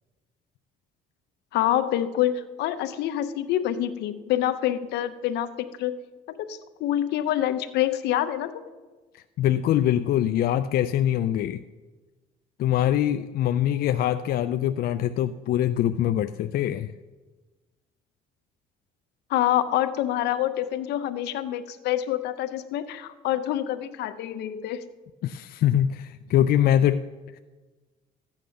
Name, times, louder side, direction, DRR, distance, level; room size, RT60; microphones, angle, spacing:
voice 1, 1.5-5.9 6.3-8.6 19.3-24.8, left 12 dB, 80° left, 12 dB, 0.8 m, -26 dB
voice 2, 9.1-11.6 12.6-16.9 25.2-27.0 27.3-27.4, left 11 dB, 65° left, 10 dB, 0.4 m, -23 dB
14.0 x 8.9 x 6.4 m, 1.3 s
cardioid pair, 110°, 17 cm